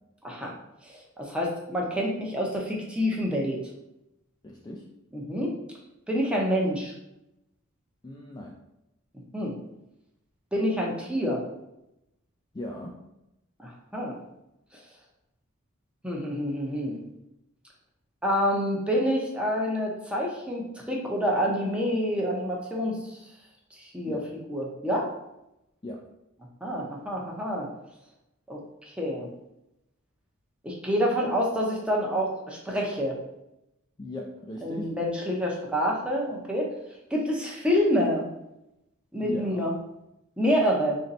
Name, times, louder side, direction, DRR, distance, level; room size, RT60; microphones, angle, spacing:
voice 1, 0.9-3.6 5.1-5.5 6.1-6.9 9.3-9.5 10.5-11.4 13.6-14.1 16.0-17.0 18.2-23.2 23.8-24.2 24.5-25.1 26.6-27.7 28.5-28.6 28.8-29.3 30.6-33.2 34.6-36.7 37.1-38.3 39.1-39.7 40.4-41.0, equal, 5° right, -2 dB, 0.7 m, -27 dB
voice 2, 4.4-4.8 8.0-8.6 12.5-13.0 24.1-24.2 25.8-26.0 34.0-34.9 39.2-39.6, left 1 dB, 20° left, -1 dB, 0.3 m, -37 dB
3.1 x 2.7 x 4.0 m, 0.87 s
head